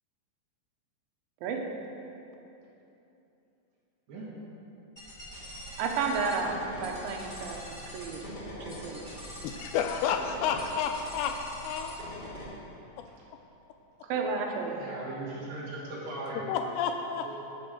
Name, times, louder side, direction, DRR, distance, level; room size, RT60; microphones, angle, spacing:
sound 1, 5.0-12.4, equal, 50° left, 0.5 m, -43 dB
voice 1, 5.8-8.3 8.6-9.2 14.1-14.8, right 4 dB, 90° right, 2 dB, 3.3 m, -32 dB
voice 2, 9.4-11.4 11.6-12.2 13.0-13.1 16.5-17.4, left 7 dB, 85° left, 5 dB, 2.6 m, -31 dB
voice 3, 14.7-16.4 17.2-17.3, right 2 dB, 55° right, -6 dB, 3.5 m, -39 dB
13.5 x 6.3 x 6.3 m, 2.9 s
omnidirectional pair, 5.3 m